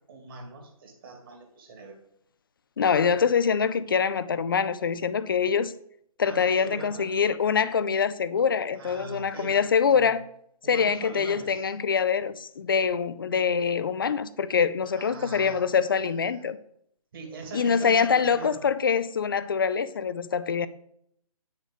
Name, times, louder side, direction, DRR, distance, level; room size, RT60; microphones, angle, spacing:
voice 1, 0.1-2.0 6.2-7.1 8.7-10.1 10.6-11.7 14.8-16.5 17.1-18.6, right 3 dB, 35° right, 2.4 m, -43 dB
voice 2, 2.8-5.7 6.2-10.2 10.7-16.6 17.5-20.7, left 6 dB, 35° left, 0.5 m, -24 dB
8.2 x 6.6 x 5.1 m
figure-of-eight pair, 140°, 19 cm